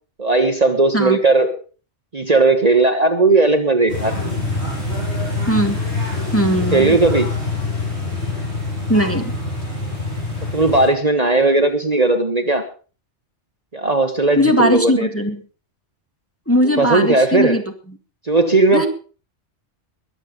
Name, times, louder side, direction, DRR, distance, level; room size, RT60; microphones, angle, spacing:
voice 1, 0.2-1.5 2.1-4.2 6.6-7.3 10.5-12.6 13.7-15.1 16.8-17.6 18.2-18.9, right 3 dB, 35° right, 6 dB, 1.3 m, -16 dB
sound 1, 3.9-10.9, left 3 dB, 65° left, 7.1 m, -25 dB
voice 2, 5.5-5.8 6.3-7.0 8.9-9.3 14.4-15.4 16.5-17.6 18.7-18.9, equal, 10° left, 4 dB, 1.7 m, -18 dB
21.5 x 7.9 x 5.2 m, 0.38 s
omnidirectional pair, 1.2 m